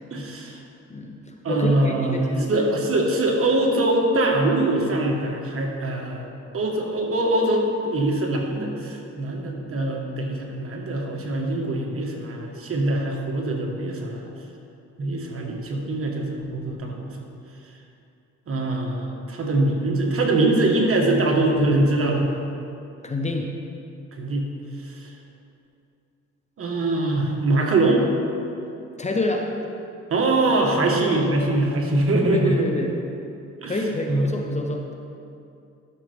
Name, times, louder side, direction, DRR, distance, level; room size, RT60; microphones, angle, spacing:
voice 1, 0.1-0.6 1.4-6.2 6.5-14.3 15.0-17.2 18.5-22.4 24.1-24.5 24.8-25.1 26.6-28.1 30.1-32.6 33.6-33.7 34.1-34.3, right 2 dB, 50° right, 0 dB, 1.5 m, -23 dB
voice 2, 1.5-2.7 23.0-23.5 29.0-29.5 30.9-31.0 32.3-32.9 33.6-34.9, left 2 dB, 25° left, 2 dB, 0.8 m, -27 dB
11.5 x 6.6 x 3.5 m, 2.6 s
cardioid pair, 90°, 30 cm